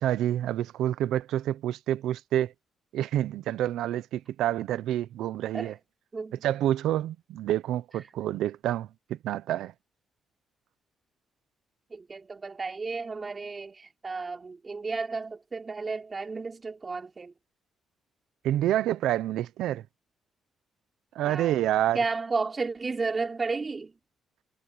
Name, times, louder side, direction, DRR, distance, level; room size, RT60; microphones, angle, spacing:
voice 1, 0.0-2.5 2.9-5.8 6.4-9.7 18.4-19.8 21.1-22.0, right 12 dB, 85° right, 0.9 m, -28 dB
voice 2, 11.9-17.3 21.2-21.6 21.9-23.9, right 4 dB, 30° right, 3.9 m, -33 dB
cardioid pair, 90°, 0 cm